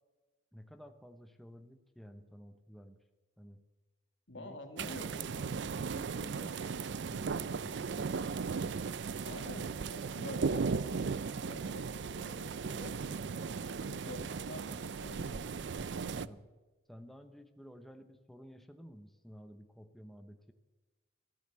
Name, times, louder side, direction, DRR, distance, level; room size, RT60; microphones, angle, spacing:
voice 1, 0.5-3.0 3.4-3.6 4.4-8.2 14.2-15.5 15.8-16.4 16.9-20.5, equal, ahead, 7 dB, 0.8 m, -53 dB
voice 2, 4.3-5.1 9.2-10.7 11.4-13.2 13.6-15.5 16.2-16.3, left 2 dB, 70° left, 4 dB, 2.5 m, -48 dB
sound 1, 4.8-16.3, right 5 dB, 65° right, 0.5 m, -37 dB
13.5 x 13.5 x 7.6 m, 1.2 s
head